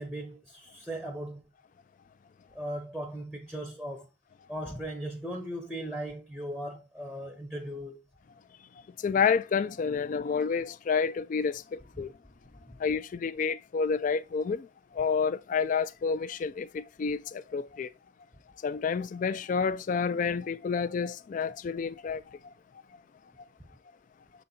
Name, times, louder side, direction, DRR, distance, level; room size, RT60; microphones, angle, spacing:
voice 1, 0.0-1.4 2.5-4.1 4.5-8.0 12.0-12.1, right 1 dB, ahead, 0.7 m, -38 dB
voice 2, 9.0-12.1 12.8-14.7 14.9-17.9 18.6-22.2, left 5 dB, 40° left, 0.3 m, -29 dB
6.4 x 4.0 x 4.2 m
head